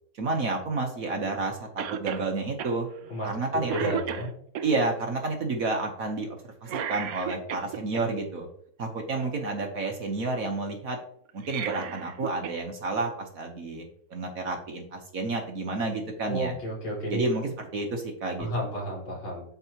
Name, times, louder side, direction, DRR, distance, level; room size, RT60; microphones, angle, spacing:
voice 1, 0.2-2.9 3.2-3.9 4.6-6.3 6.6-8.5 8.8-11.0 11.3-13.9 14.1-16.5 17.1-18.7, right 3 dB, 50° right, 2 dB, 1.2 m, -30 dB
Cough, 1.8-2.3 2.6-2.7 3.2-3.4 3.7-4.7 6.7-8.0 11.3-12.6 12.9-13.0 14.1-14.2, right 8 dB, 70° right, 0.8 m, -34 dB
voice 2, 3.7-4.3 16.3-17.2 18.4-19.4, equal, 85° left, -5 dB, 4.5 m, -31 dB
12.0 x 4.7 x 2.9 m, 0.65 s
omnidirectional pair, 2.2 m